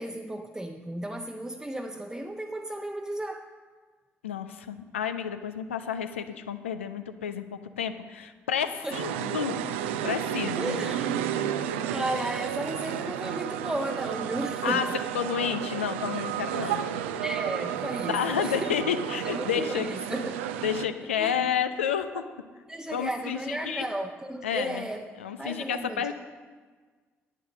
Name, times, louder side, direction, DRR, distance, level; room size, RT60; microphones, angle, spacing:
voice 1, 0.0-3.5 8.8-9.0 10.6-15.0 16.5-16.8 17.2-18.7 19.2-20.5 21.2-21.5 22.1-22.2 22.7-25.1 25.4-26.1, right 1 dB, 10° right, 3 dB, 0.9 m, -34 dB
voice 2, 4.2-9.6 10.0-10.9 14.6-14.9 15.1-17.0 18.1-19.9 20.6-22.2 22.9-23.9 24.4-24.9 25.2-26.1, left 8 dB, 80° left, 10 dB, 0.6 m, -30 dB
sound 1, 8.9-20.9, right 10 dB, 70° right, 0.6 m, -32 dB
11.0 x 9.6 x 6.5 m, 1.5 s
figure-of-eight pair, 45°, 7 cm